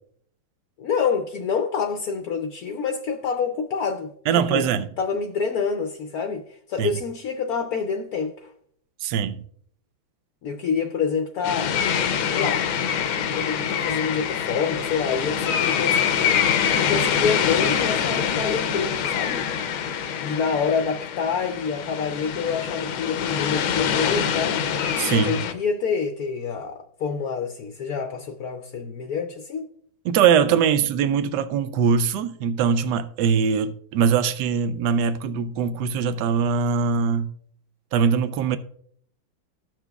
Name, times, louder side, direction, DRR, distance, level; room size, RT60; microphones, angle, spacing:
voice 1, 0.8-4.6 5.0-6.4 6.7-8.3 10.4-11.8 12.3-12.7 13.3-19.5 20.2-24.6 25.1-29.7, left 6 dB, 65° left, 1.0 m, -27 dB
voice 2, 4.3-4.9 6.8-6.9 9.0-9.4 25.0-25.4 30.0-37.3 37.9-38.6, right 7 dB, 70° right, 1.1 m, -22 dB
sound 1, 11.4-25.5, left 8 dB, 90° left, 1.5 m, -25 dB
15.5 x 6.0 x 2.3 m
omnidirectional pair, 2.2 m